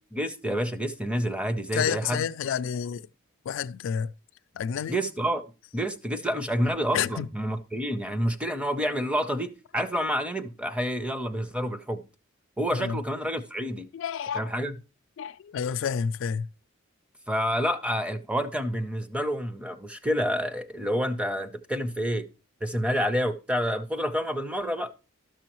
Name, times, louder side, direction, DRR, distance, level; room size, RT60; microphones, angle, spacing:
voice 1, 0.1-2.2 4.9-5.4 5.7-12.0 12.6-13.9 14.4-14.7 17.3-22.3 22.6-24.9, equal, 5° right, 0.6 m, -28 dB
voice 2, 1.7-3.1 3.4-4.1 4.5-5.0 6.9-7.3 12.7-13.0 13.9-14.5 15.2-16.5, left 7 dB, 65° left, 0.3 m, -29 dB
12.5 x 6.2 x 3.0 m
head